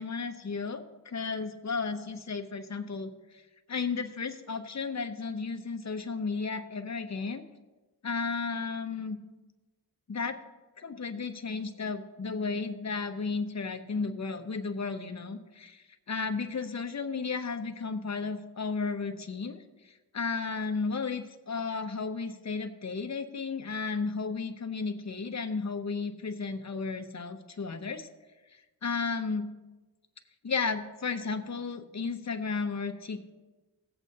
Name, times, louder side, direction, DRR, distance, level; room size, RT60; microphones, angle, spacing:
voice 1, 0.0-3.1 3.7-7.4 8.0-9.2 10.1-10.4 10.8-19.6 20.1-28.1 28.8-29.5 30.4-33.3, left 4 dB, 40° left, 6 dB, 0.8 m, -33 dB
17.0 x 7.9 x 2.7 m, 1.2 s
wide cardioid pair, 95°, 41 cm